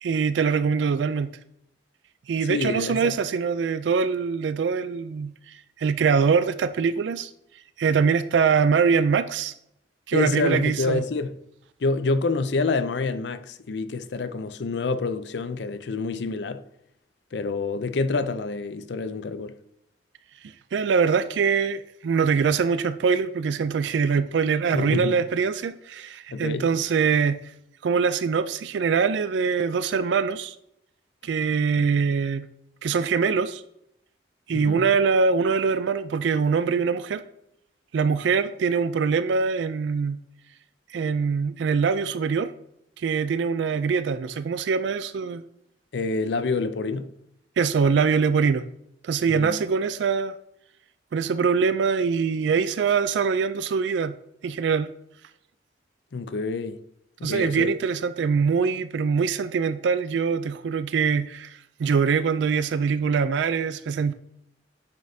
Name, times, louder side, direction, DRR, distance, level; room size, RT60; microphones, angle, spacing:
voice 1, 0.0-1.3 2.3-5.3 5.8-7.3 7.8-9.5 10.1-11.0 20.7-27.4 27.8-30.5 31.2-32.5 32.8-33.6 34.5-37.2 37.9-40.2 40.9-42.5 43.0-45.4 47.6-48.6 49.0-50.3 51.1-54.2 54.4-54.9 57.2-64.1, right 5 dB, 75° right, 0.3 m, -23 dB
voice 2, 2.5-3.1 10.1-11.4 11.8-16.6 17.3-19.6 24.7-25.2 26.3-26.7 34.5-34.9 45.9-47.1 49.3-49.6 56.1-56.8 57.2-57.7, left 3 dB, 65° left, 0.5 m, -27 dB
9.3 x 5.3 x 2.7 m
head